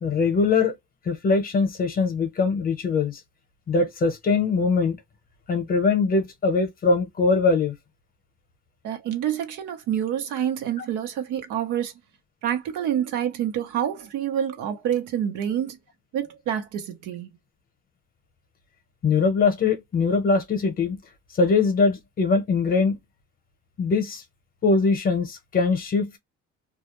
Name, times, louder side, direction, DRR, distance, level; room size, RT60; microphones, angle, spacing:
voice 1, 0.0-0.7 1.1-3.2 3.7-5.0 5.5-7.7 19.0-21.0 21.4-23.0 23.8-24.2 24.6-26.2, left 4 dB, 30° left, 0.7 m, -22 dB
voice 2, 8.8-11.9 12.4-15.8 16.1-17.3, right 10 dB, 90° right, 0.8 m, -27 dB
2.3 x 2.1 x 2.9 m
cardioid pair, 160°, 30 cm